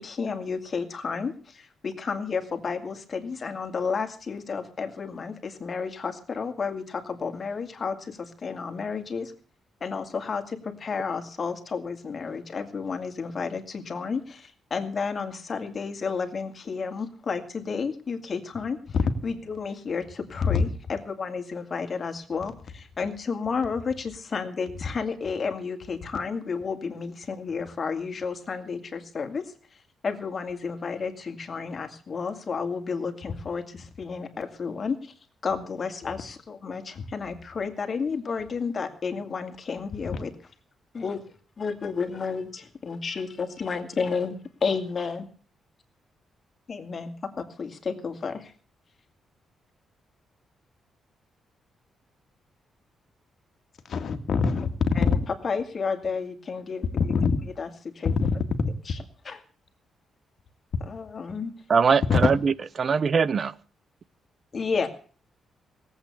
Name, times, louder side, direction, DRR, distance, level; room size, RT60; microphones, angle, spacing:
voice 1, 0.0-9.3 9.8-18.8 19.2-29.5 30.0-35.1 35.4-40.3 40.9-41.2 41.6-45.2 46.7-48.5 54.9-55.2 55.4-57.1 57.6-58.1 58.9-59.0 59.2-59.4 60.9-61.5 64.5-64.9, left 5 dB, 35° left, 2.4 m, -31 dB
voice 2, 53.9-54.7 55.0-55.2 57.0-57.4 58.0-58.7 62.1-62.2, left 5 dB, 55° left, 2.0 m, -23 dB
voice 3, 61.7-63.5, right 6 dB, 40° right, 0.7 m, -22 dB
18.0 x 8.3 x 8.3 m
cardioid pair, 125°, 0 cm